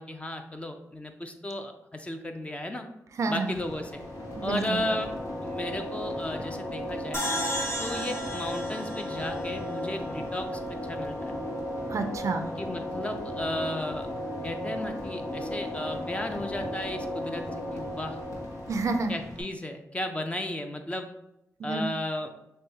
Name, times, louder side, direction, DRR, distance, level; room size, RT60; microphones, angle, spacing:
voice 1, 0.0-2.8 3.3-4.0 4.4-5.1 5.4-7.2 7.8-11.4 12.6-14.1 14.4-17.4 17.7-18.2 19.1-21.1 21.6-22.3, left 1 dB, 20° left, 5 dB, 0.6 m, -34 dB
voice 2, 3.2-3.5 4.4-4.8 11.9-12.5 18.7-19.1 21.6-21.8, right 3 dB, 60° right, 7 dB, 0.4 m, -29 dB
sound 1, 3.4-19.4, left 1 dB, 80° left, 1.1 m, -35 dB
sound 2, 7.1-10.4, equal, 45° left, 1.5 m, -34 dB
6.4 x 2.3 x 2.8 m, 0.85 s
cardioid pair, 65°, 6 cm